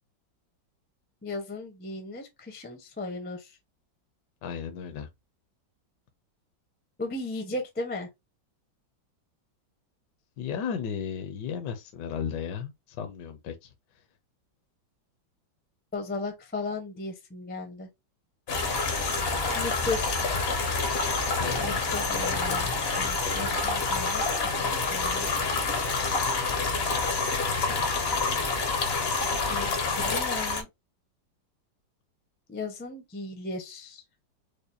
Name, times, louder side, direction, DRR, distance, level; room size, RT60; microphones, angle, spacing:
voice 1, 1.2-3.4 7.0-8.1 15.9-17.9 19.5-20.2 21.6-25.3 29.5-29.7 29.9-30.7 32.5-34.0, left 2 dB, 15° left, 0.4 m, -36 dB
voice 2, 4.4-5.1 10.4-13.7 21.3-22.0, left 7 dB, 70° left, 1.2 m, -35 dB
sound 1, 18.5-30.6, left 4 dB, 55° left, 0.6 m, -27 dB
4.9 x 2.2 x 2.6 m
omnidirectional pair, 2.1 m